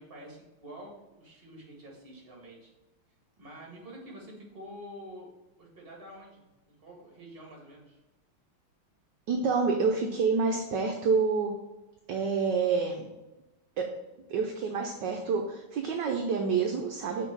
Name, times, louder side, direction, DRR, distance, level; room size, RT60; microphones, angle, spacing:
voice 1, 0.0-2.7 3.4-5.3 5.6-8.0, equal, 30° right, -2 dB, 2.0 m, -47 dB
voice 2, 9.3-11.6 12.1-13.1 13.8-14.0 14.3-17.3, right 5 dB, 70° right, 3 dB, 1.2 m, -28 dB
5.9 x 4.5 x 6.1 m, 1.0 s
omnidirectional pair, 2.3 m